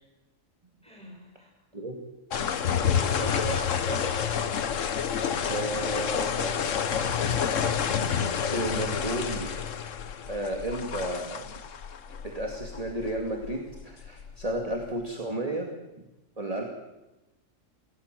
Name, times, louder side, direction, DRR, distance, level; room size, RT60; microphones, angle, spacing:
voice 1, 0.8-1.5 2.7-4.3, right 1 dB, 5° left, 0 dB, 7.2 m, -37 dB
sound 1, 2.3-14.9, left 7 dB, 70° left, 1.4 m, -29 dB
voice 2, 5.4-6.6 8.5-9.5 10.3-11.5 12.3-15.7 16.4-16.6, right 1 dB, 25° right, 1 dB, 2.6 m, -32 dB
27.5 x 17.5 x 7.7 m, 1.0 s
omnidirectional pair, 1.4 m